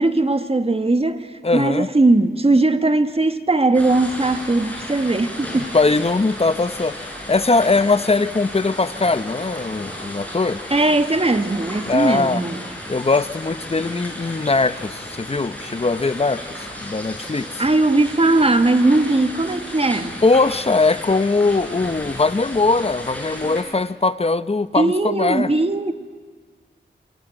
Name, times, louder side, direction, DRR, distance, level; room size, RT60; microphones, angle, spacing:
voice 1, 0.0-5.7 10.7-12.6 17.6-20.2 24.8-25.9, right 2 dB, 30° right, 1.6 m, -19 dB
voice 2, 1.4-1.9 5.5-10.6 11.9-12.4 12.9-17.6 20.2-25.5, left 3 dB, 30° left, 0.9 m, -20 dB
sound 1, 3.7-23.6, left 1 dB, 10° left, 7.3 m, -34 dB
27.0 x 24.0 x 9.1 m
wide cardioid pair, 90°, 19 cm